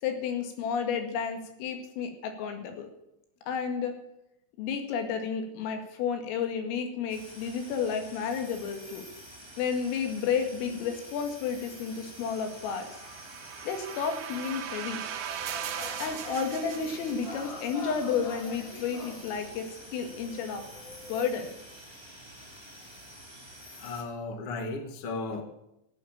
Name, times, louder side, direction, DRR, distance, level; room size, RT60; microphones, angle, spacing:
voice 1, 0.0-2.9 3.5-3.9 4.6-9.1 9.6-13.3 13.6-15.0 16.0-20.6 21.1-21.5, left 6 dB, 85° left, 5 dB, 4.7 m, -32 dB
sound 1, 7.1-24.0, equal, 5° left, 2.1 m, -48 dB
sound 2, 12.3-17.6, right 9 dB, 85° right, 1.9 m, -39 dB
sound 3, 15.3-21.3, left 2 dB, 35° left, 2.0 m, -44 dB
voice 2, 23.8-25.4, left 3 dB, 60° left, 6 dB, 1.5 m, -35 dB
16.0 x 8.7 x 8.9 m, 0.85 s
omnidirectional pair, 5.8 m